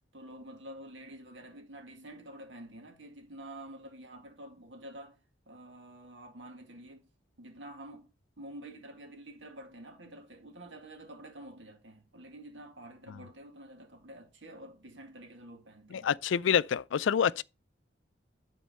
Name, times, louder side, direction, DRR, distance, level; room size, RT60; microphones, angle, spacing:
voice 1, 0.1-5.2 5.5-7.1 7.4-8.1 8.4-16.1 16.5-16.6, right 1 dB, 75° right, 1.9 m, -48 dB
voice 2, 15.9-17.4, left 7 dB, 85° left, 0.4 m, -27 dB
10.5 x 4.4 x 5.3 m
head